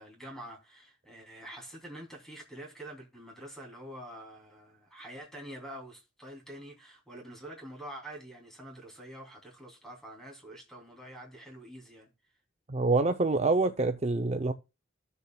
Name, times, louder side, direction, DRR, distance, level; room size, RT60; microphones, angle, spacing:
voice 1, 0.0-12.1, right 1 dB, ahead, 2.9 m, -46 dB
voice 2, 12.7-14.5, right 3 dB, 35° right, 0.6 m, -26 dB
14.5 x 6.9 x 2.3 m
head